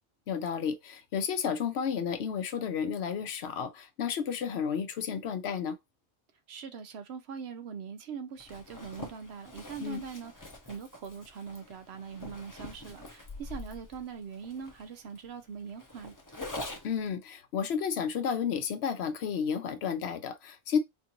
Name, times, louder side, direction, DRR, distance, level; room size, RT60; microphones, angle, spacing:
voice 1, 0.3-5.7 9.8-10.0 16.8-20.8, left 7 dB, 75° left, 0.9 m, -32 dB
voice 2, 6.5-10.3 10.6-16.1, right 6 dB, 70° right, 0.9 m, -42 dB
Zipper (clothing), 8.4-17.1, left 2 dB, 20° left, 0.6 m, -45 dB
4.4 x 2.5 x 2.8 m
omnidirectional pair, 1.1 m